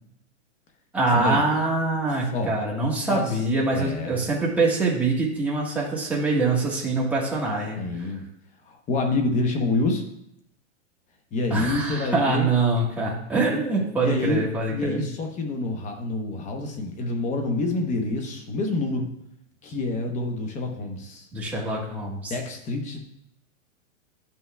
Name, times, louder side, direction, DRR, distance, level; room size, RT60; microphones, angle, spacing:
voice 1, 0.9-8.1 11.5-15.0 21.3-22.3, right 3 dB, 5° right, -4 dB, 1.3 m, -24 dB
voice 2, 2.3-2.7 3.1-3.3 3.7-4.2 7.8-8.2 8.7-10.1 11.3-12.5 13.3-13.6 14.0-14.4 14.7-19.1 19.6-21.3 22.3-23.0, left 2 dB, 20° left, 4 dB, 0.8 m, -27 dB
10.5 x 5.7 x 2.2 m, 0.76 s
hypercardioid pair, 145°, 37 cm